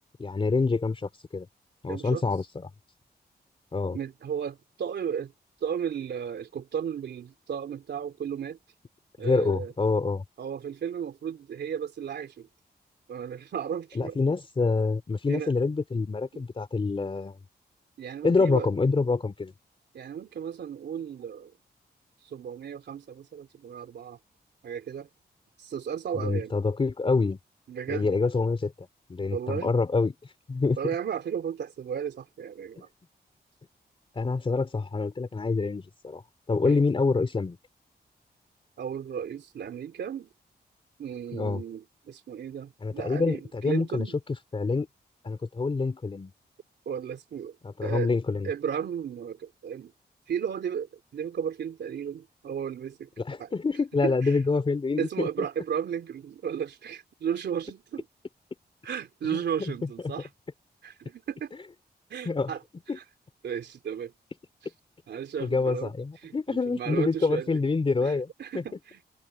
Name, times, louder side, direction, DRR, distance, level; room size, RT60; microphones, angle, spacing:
voice 1, 0.2-1.5 1.8-2.7 3.7-4.0 9.2-10.2 13.9-17.4 18.2-19.5 26.1-27.4 27.9-30.1 30.5-30.8 34.1-36.2 36.5-37.6 41.3-41.6 42.8-44.1 44.5-44.9 45.2-46.3 47.6-48.5 53.2-55.3 59.3-59.7 60.0-60.1 62.2-62.5 62.9-63.0 65.4-68.6, left 4 dB, 30° left, 2.9 m, -26 dB
voice 2, 1.9-2.2 3.9-5.3 5.6-8.6 9.2-9.7 10.4-12.5 13.1-14.2 15.3-15.5 16.3-16.4 18.0-18.7 19.9-21.5 22.2-24.2 24.6-25.1 25.6-26.5 27.7-28.1 29.3-29.7 30.8-32.9 36.6-36.8 38.8-40.3 41.0-44.1 46.8-47.6 47.8-48.1 48.4-49.9 50.3-53.1 53.4-53.5 54.0-54.4 55.0-58.0 58.8-60.3 60.8-61.5 62.1-62.6 62.9-63.0 63.4-64.1 65.1-65.9 66.2-67.6 68.0-69.0, right 8 dB, 85° right, 3.2 m, -34 dB
wide cardioid pair, 145°, 17 cm